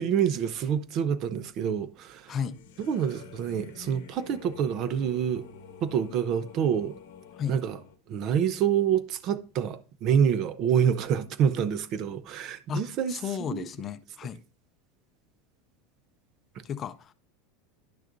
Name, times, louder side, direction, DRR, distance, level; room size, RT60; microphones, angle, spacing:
voice 1, 0.0-2.3 2.8-5.4 5.8-6.9 7.5-7.8 8.1-13.2 13.5-13.7, right 8 dB, 45° right, 0.6 m, -27 dB
voice 2, 2.3-2.6 7.3-7.6 12.7-14.4 16.6-17.1, left 8 dB, 30° left, 0.5 m, -34 dB
sound 1, 2.5-8.0, left 7 dB, 90° left, 0.9 m, -48 dB
10.5 x 6.4 x 2.6 m
supercardioid pair, 135°, 0 cm